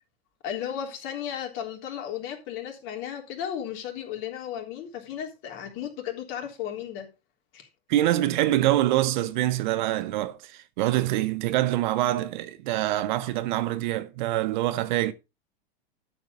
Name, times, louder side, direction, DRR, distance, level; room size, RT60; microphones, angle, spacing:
voice 1, 0.4-7.1 7.5-7.7, left 9 dB, 40° left, 3.5 m, -34 dB
voice 2, 7.9-15.1, right 14 dB, 50° right, 1.0 m, -25 dB
12.5 x 7.8 x 3.8 m
figure-of-eight pair, 95°, 30 cm